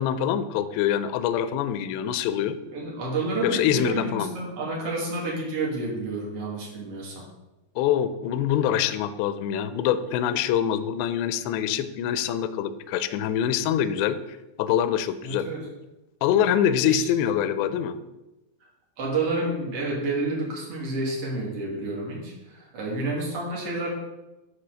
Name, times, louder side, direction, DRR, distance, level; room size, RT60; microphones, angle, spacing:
voice 1, 0.0-2.6 3.4-4.3 7.8-15.5 16.2-18.0, left 9 dB, 85° left, 11 dB, 2.4 m, -25 dB
voice 2, 2.7-7.2 15.2-15.7 16.8-17.1 19.0-23.9, right 2 dB, 70° right, -4 dB, 1.3 m, -30 dB
9.6 x 3.3 x 6.3 m, 0.99 s
omnidirectional pair, 5.4 m